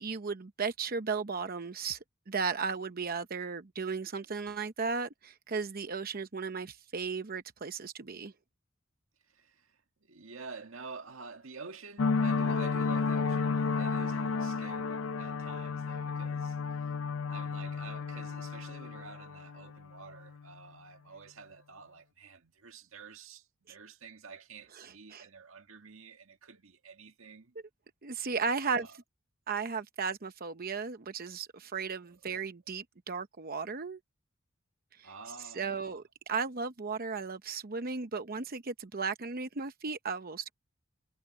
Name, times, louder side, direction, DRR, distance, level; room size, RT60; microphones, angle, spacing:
voice 1, 0.0-2.0 2.3-8.3 24.8-25.2 28.0-28.9 29.5-34.0 35.0-35.1 35.6-40.5, right 5 dB, 45° right, 0.8 m, -35 dB
voice 2, 9.2-17.0 17.3-27.6 28.6-29.0 32.0-32.2 35.0-36.0, right 4 dB, 90° right, 1.8 m, -49 dB
sound 1, 12.0-20.4, left 4 dB, 80° left, 0.6 m, -32 dB
head